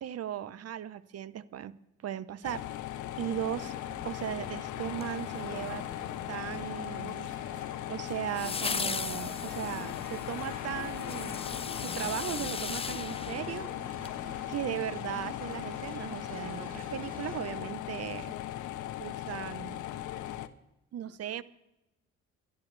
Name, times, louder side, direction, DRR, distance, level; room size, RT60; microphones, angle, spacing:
voice 1, 0.0-2.7 3.2-3.7 4.0-5.9 6.3-7.3 7.9-11.4 11.7-13.7 14.5-18.3 19.0-19.9 20.9-21.4, right 10 dB, 55° right, 17 dB, 0.8 m, -37 dB
sound 1, 2.4-20.5, left 13 dB, 75° left, 0.8 m, -38 dB
sound 2, 3.5-17.4, right 2 dB, 25° right, 3.3 m, -49 dB
sound 3, 4.9-5.8 8.3-14.2 14.5-14.6, left 5 dB, 20° left, 0.4 m, -38 dB
26.5 x 11.5 x 3.3 m, 0.91 s
cardioid pair, 90°, 30 cm